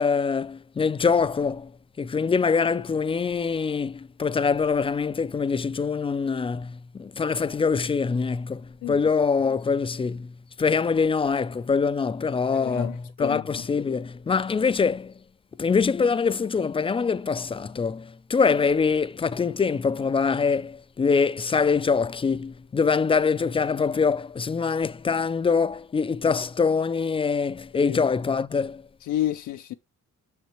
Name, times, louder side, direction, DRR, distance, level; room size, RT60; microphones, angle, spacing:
voice 1, 0.0-1.7 2.0-10.3 10.6-15.1 15.6-28.8, left 5 dB, 20° left, 0.3 m, -24 dB
voice 2, 12.5-13.4 27.7-28.0 29.0-29.7, left 12 dB, 80° left, 0.5 m, -30 dB
6.5 x 6.3 x 3.0 m
cardioid pair, 90°, 30 cm